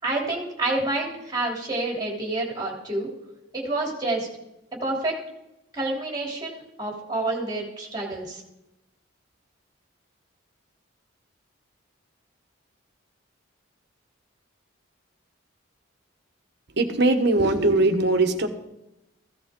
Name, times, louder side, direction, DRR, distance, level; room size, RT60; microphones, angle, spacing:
voice 1, 0.0-3.1 3.5-4.3 4.8-5.2 5.7-8.4, right 2 dB, 20° right, -1 dB, 3.2 m, -28 dB
voice 2, 16.8-18.5, right 2 dB, 55° right, 6 dB, 1.2 m, -20 dB
15.5 x 13.5 x 3.8 m, 0.88 s
head